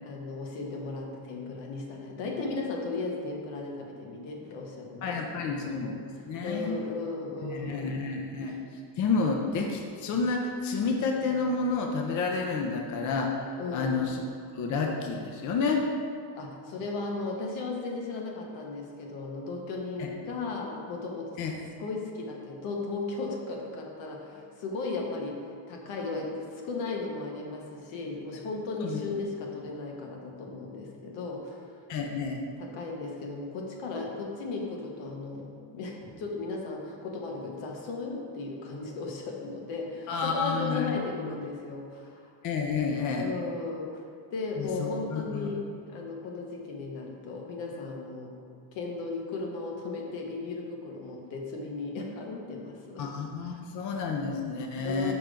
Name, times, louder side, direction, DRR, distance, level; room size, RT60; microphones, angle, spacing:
voice 1, 0.0-8.0 13.6-14.0 16.3-21.4 21.8-25.4 25.7-31.7 32.6-42.3 43.2-48.3 48.7-53.0 54.1-54.2 54.8-55.1, left 3 dB, 85° left, 0 dB, 1.1 m, -36 dB
voice 2, 5.0-6.9 7.4-8.6 9.0-14.2 14.6-15.8 20.0-20.1 21.4-21.5 28.8-29.0 31.9-32.4 40.1-41.0 42.4-43.3 44.6-45.5 53.0-55.1, left 4 dB, 45° left, 2 dB, 0.5 m, -30 dB
5.9 x 3.4 x 5.0 m, 2.3 s
cardioid pair, 140°, 44 cm